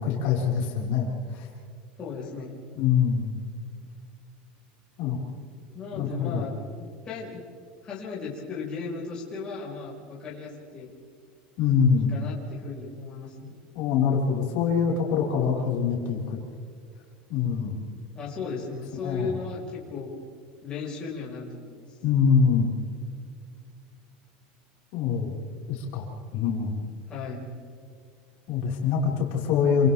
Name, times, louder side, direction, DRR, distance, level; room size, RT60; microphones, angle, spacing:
voice 1, 0.0-1.5 2.8-3.3 5.0-5.2 6.0-6.5 11.6-12.1 13.8-16.4 17.3-17.8 19.0-19.3 22.0-22.7 24.9-25.3 25.7-26.1 26.3-26.9 28.5-29.9, left 6 dB, 50° left, -3 dB, 5.5 m, -24 dB
voice 2, 2.0-2.6 5.7-7.4 7.8-10.9 11.9-13.5 18.1-20.1 20.6-22.0 27.1-27.4, left 4 dB, 20° left, -5 dB, 5.4 m, -36 dB
29.0 x 27.0 x 3.7 m, 2.3 s
supercardioid pair, 170°, 4 cm